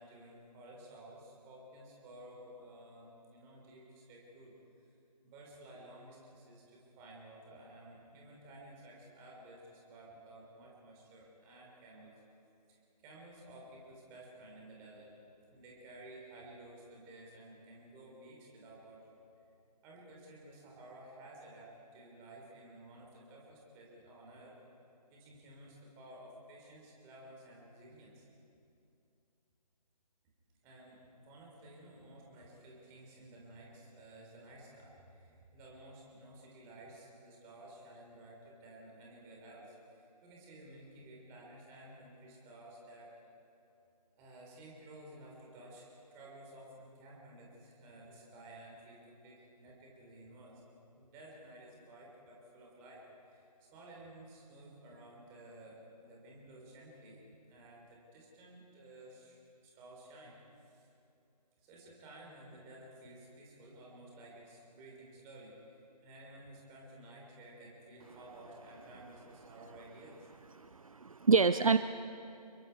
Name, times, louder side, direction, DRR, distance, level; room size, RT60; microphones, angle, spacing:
voice 1, 0.0-4.5 5.2-12.1 12.7-12.8 13.0-15.1 15.5-19.1 19.8-24.6 25.1-28.2 30.6-43.2 44.2-50.6 51.0-59.4 59.6-60.9 61.6-70.3, right 1 dB, 10° right, -2 dB, 3.6 m, -54 dB
voice 2, 70.6-71.8, right 5 dB, 55° right, 12 dB, 0.6 m, -27 dB
29.0 x 22.0 x 4.7 m, 2.6 s
figure-of-eight pair, 150°, 21 cm